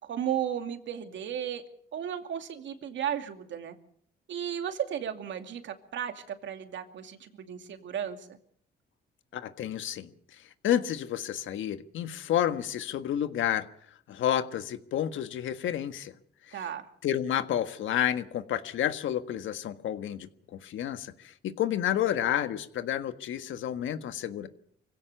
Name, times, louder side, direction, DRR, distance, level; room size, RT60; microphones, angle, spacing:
voice 1, 0.0-1.6 1.9-3.7 4.3-8.4 16.5-16.9, right 9 dB, 70° right, 7 dB, 2.5 m, -34 dB
voice 2, 9.3-10.1 10.6-13.7 14.1-16.2 16.5-16.7 17.0-24.5, left 10 dB, 75° left, 10 dB, 1.6 m, -30 dB
24.0 x 16.5 x 6.9 m, 0.66 s
cardioid pair, 90°, 20 cm